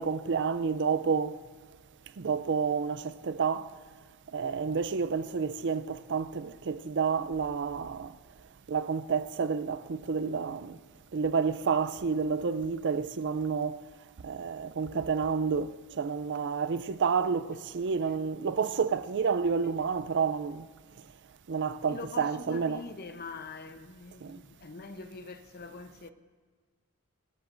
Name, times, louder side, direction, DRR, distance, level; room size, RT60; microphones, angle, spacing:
voice 1, 0.0-1.4 2.2-3.7 4.3-8.1 8.7-10.8 11.1-13.8 14.2-20.7 21.5-22.8 24.2-24.4, right 5 dB, 60° right, 0.5 m, -30 dB
voice 2, 21.8-26.1, left 3 dB, 50° left, 0.8 m, -43 dB
24.0 x 12.5 x 2.6 m
head